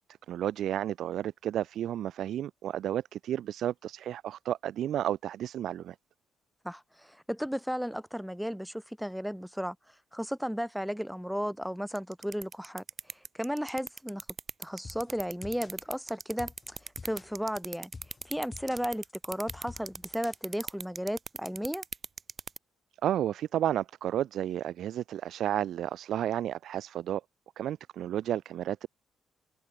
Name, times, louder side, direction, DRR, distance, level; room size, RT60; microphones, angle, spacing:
voice 1, 0.3-5.9 23.0-27.2 27.6-28.9, right 11 dB, 75° right, 0.4 m, -32 dB
voice 2, 6.6-9.8 10.1-12.8 13.3-14.2 14.6-17.9 18.2-21.8, equal, ahead, 0.8 m, -34 dB
sound 1, 12.0-22.6, right 5 dB, 40° right, 1.9 m, -38 dB
sound 2, 14.8-20.9, left 4 dB, 30° left, 3.8 m, -48 dB
cardioid pair, 90°, 0 cm